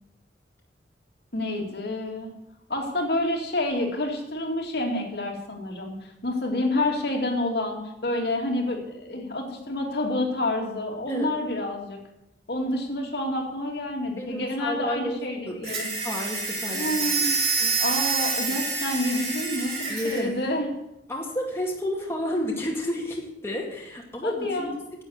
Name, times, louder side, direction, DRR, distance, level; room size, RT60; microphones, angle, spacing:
voice 1, 1.3-2.3 2.7-12.0 12.5-15.9 16.7-17.4 17.8-20.7 24.2-24.7, left 1 dB, 65° left, 0 dB, 2.6 m, -28 dB
voice 2, 14.2-15.2 15.5-15.7 16.0-17.7 19.9-20.3 21.1-25.0, left 1 dB, 15° left, -2 dB, 2.1 m, -31 dB
sound 1, 15.6-20.2, right 4 dB, 40° right, 5.8 m, -27 dB
11.0 x 8.2 x 8.0 m, 0.84 s
head